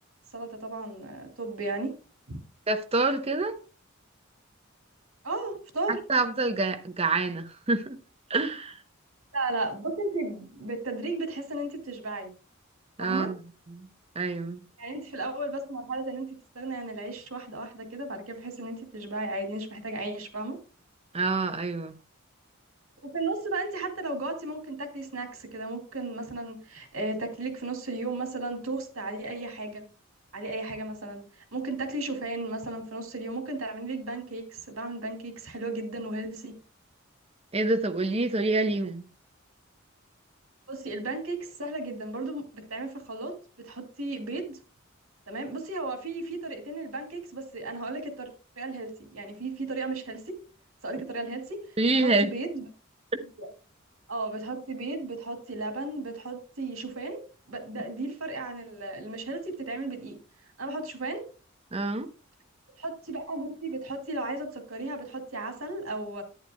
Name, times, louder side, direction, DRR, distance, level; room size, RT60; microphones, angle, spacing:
voice 1, 0.3-1.9 2.3-2.4 5.2-6.0 9.3-12.3 13.0-13.3 14.8-20.6 23.0-29.8 30.3-31.2 31.5-36.5 40.7-44.6 45.3-48.3 48.6-50.4 50.8-51.6 51.9-52.6 53.4-53.5 54.1-57.2 57.5-60.2 60.6-61.2 62.8-66.2, right 2 dB, 85° right, 2.3 m, -34 dB
voice 2, 2.7-3.6 5.9-8.0 8.3-8.8 13.0-13.4 13.7-13.9 14.1-14.6 21.1-22.0 37.5-39.1 51.8-52.3 61.7-62.1, right 3 dB, 30° right, 0.8 m, -27 dB
11.0 x 9.2 x 2.2 m
head